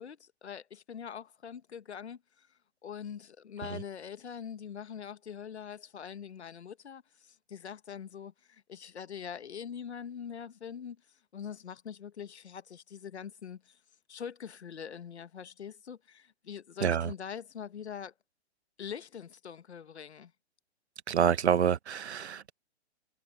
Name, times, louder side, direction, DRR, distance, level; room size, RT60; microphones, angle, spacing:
voice 1, 0.0-2.5 2.8-11.0 11.3-13.8 14.1-18.1 18.8-20.3, left 8 dB, 80° left, 1.3 m, -43 dB
voice 2, 21.1-22.5, right 8 dB, 80° right, 1.0 m, -27 dB
hypercardioid pair, 125°, 33 cm